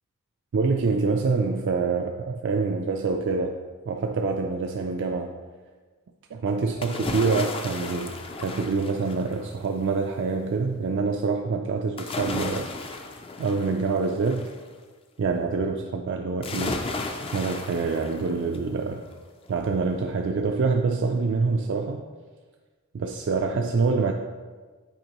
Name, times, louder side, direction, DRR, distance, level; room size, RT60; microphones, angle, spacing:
voice 1, 0.5-3.6 3.9-5.3 6.3-8.1 8.4-12.7 13.4-14.5 15.2-16.8 17.3-19.0 19.5-22.0 22.9-24.1, right 4 dB, 55° right, 2 dB, 0.4 m, -26 dB
sound 1, 6.8-9.6 12.0-14.6 16.4-18.7 19.1-19.2, left 3 dB, 25° left, 0.4 m, -34 dB
7.9 x 4.5 x 3.0 m, 1.4 s
head